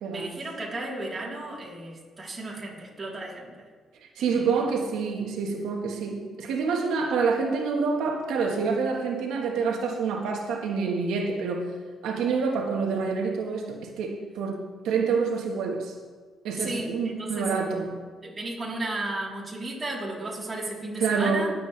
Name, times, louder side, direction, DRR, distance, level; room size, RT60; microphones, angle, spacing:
voice 1, 0.1-3.7 4.2-4.6 16.6-17.5 18.2-21.5, right 2 dB, 25° right, -5 dB, 3.5 m, -34 dB
voice 2, 4.2-11.7 12.0-15.9 16.4-18.0 21.0-21.5, right 5 dB, 85° right, 2 dB, 1.4 m, -27 dB
20.0 x 7.7 x 3.3 m, 1.5 s
cardioid pair, 90°, 0 cm